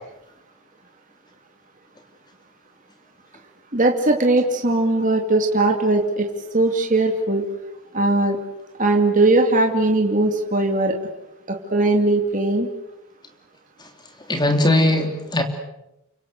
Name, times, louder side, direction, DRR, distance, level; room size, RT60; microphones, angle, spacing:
voice 1, 3.7-7.5 7.9-8.4 8.8-11.0 11.5-12.7, right 2 dB, 35° right, 2 dB, 2.5 m, -19 dB
voice 2, 14.3-15.4, left 1 dB, 20° left, 5 dB, 3.1 m, -19 dB
30.0 x 25.0 x 8.0 m, 0.89 s
head